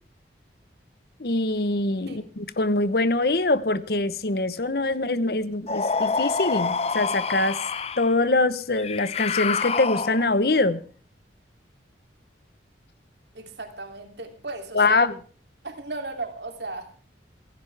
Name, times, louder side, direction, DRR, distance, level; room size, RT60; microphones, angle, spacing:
voice 1, 1.2-7.6 8.0-10.8 14.7-15.1, left 2 dB, 55° left, 1.0 m, -23 dB
sound 1, 5.7-8.1 8.8-10.4, left 5 dB, 35° left, 0.6 m, -27 dB
voice 2, 13.3-15.1 15.6-17.0, right 2 dB, 70° right, 2.9 m, -36 dB
27.5 x 10.5 x 3.4 m
head